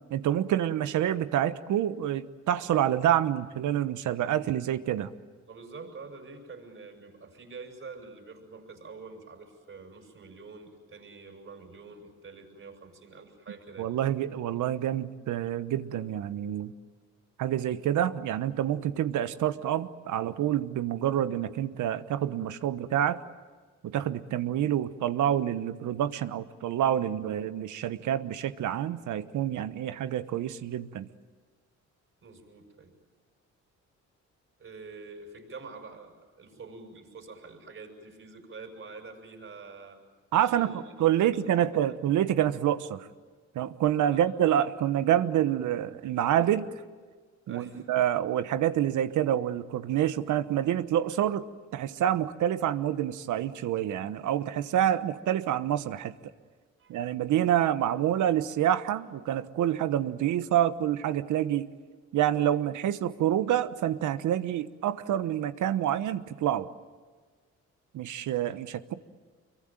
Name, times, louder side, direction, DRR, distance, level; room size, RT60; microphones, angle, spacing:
voice 1, 0.1-5.1 13.8-16.7 17.4-23.2 23.8-31.1 40.3-43.1 43.5-46.7 47.5-51.5 51.7-56.1 56.9-61.7 62.1-66.7 67.9-68.9, right 11 dB, 75° right, 12 dB, 1.1 m, -27 dB
voice 2, 5.5-13.9 32.2-32.9 34.6-40.0 40.3-40.9 41.2-41.4 41.9-42.0 44.1-44.2 47.5-47.9 56.8-56.9, right 4 dB, 45° right, 3 dB, 6.9 m, -46 dB
26.0 x 23.0 x 9.0 m, 1.5 s
cardioid pair, 90°, 30 cm